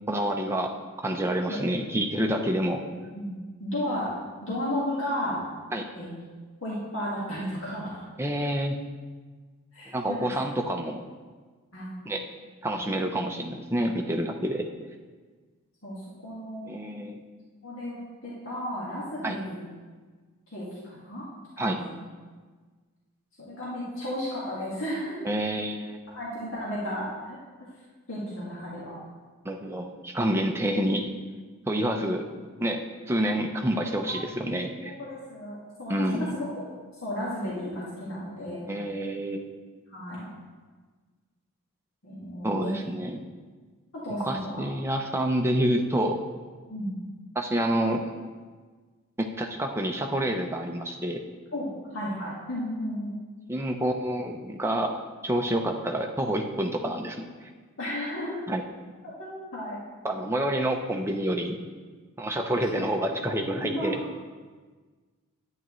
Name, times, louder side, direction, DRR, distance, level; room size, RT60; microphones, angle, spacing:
voice 1, 0.1-0.7 1.0-2.8 5.7-5.9 8.2-8.8 9.9-11.0 12.1-12.2 12.6-14.7 16.6-17.2 19.2-19.4 21.6-21.8 25.2-26.0 29.4-31.1 31.7-32.3 32.6-34.9 35.9-36.4 38.7-39.5 42.4-43.2 44.2-46.2 47.4-48.0 49.2-51.2 53.5-57.5 58.5-58.6 60.0-61.6 62.2-64.0, right 1 dB, 10° right, 2 dB, 0.6 m, -28 dB
voice 2, 3.1-4.1 4.4-5.4 5.9-6.1 6.6-8.0 9.7-10.3 11.7-11.9 12.7-13.3 15.8-16.8 17.6-19.7 20.5-21.2 21.6-22.0 23.4-25.2 26.2-27.4 28.1-29.0 34.0-34.2 34.8-36.6 37.0-38.7 39.9-40.3 42.0-42.7 43.9-44.6 46.7-47.0 51.5-51.7 51.9-53.1 57.8-58.4 59.2-59.8 62.8-62.9 63.5-64.0, equal, 60° left, -7 dB, 1.8 m, -34 dB
10.5 x 8.7 x 3.1 m, 1.4 s
head